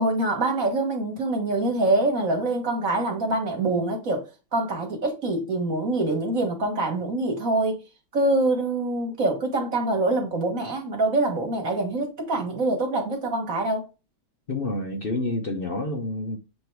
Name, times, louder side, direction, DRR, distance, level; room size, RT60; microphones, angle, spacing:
voice 1, 0.0-7.8 8.1-13.8, right 2 dB, 45° right, 1.8 m, -25 dB
voice 2, 14.5-16.4, left 2 dB, 60° left, 0.6 m, -28 dB
7.6 x 3.2 x 4.6 m
omnidirectional pair, 2.2 m